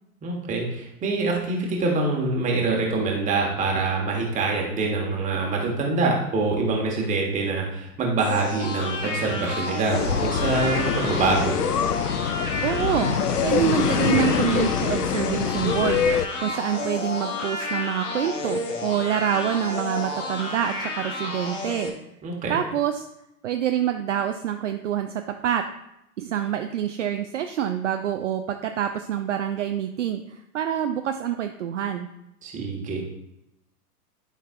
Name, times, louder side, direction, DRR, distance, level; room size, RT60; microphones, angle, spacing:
voice 1, 0.2-11.6 22.2-22.6 32.4-33.1, right 3 dB, 15° right, -1 dB, 1.4 m, -25 dB
sound 1, 8.2-21.9, left 2 dB, 55° left, 1.4 m, -31 dB
sound 2, 9.9-16.3, left 7 dB, 80° left, 0.6 m, -25 dB
voice 2, 12.6-21.9 22.5-23.1 23.4-25.7 26.2-32.1, right 10 dB, 55° right, 6 dB, 0.5 m, -26 dB
10.5 x 5.3 x 2.5 m, 0.84 s
figure-of-eight pair, 105°, 46 cm